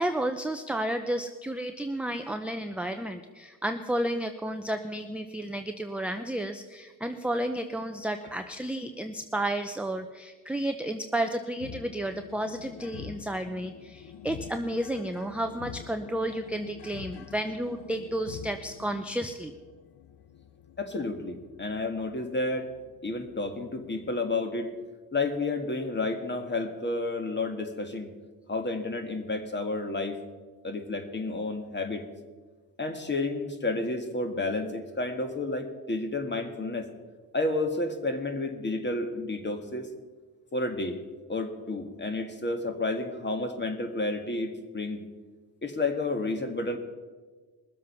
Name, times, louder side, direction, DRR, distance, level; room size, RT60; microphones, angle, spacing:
voice 1, 0.0-19.5, right 1 dB, 5° right, 6 dB, 0.6 m, -32 dB
sound 1, 11.6-24.3, left 9 dB, 70° left, 0.8 m, -47 dB
voice 2, 20.8-22.7 23.0-24.7 25.1-28.1 28.5-30.2 30.6-32.0 32.8-36.9 37.3-39.9 40.5-41.0 41.3-45.0 45.6-46.8, left 2 dB, 25° left, 6 dB, 1.7 m, -31 dB
21.0 x 7.5 x 5.6 m, 1.4 s
cardioid pair, 90°, 42 cm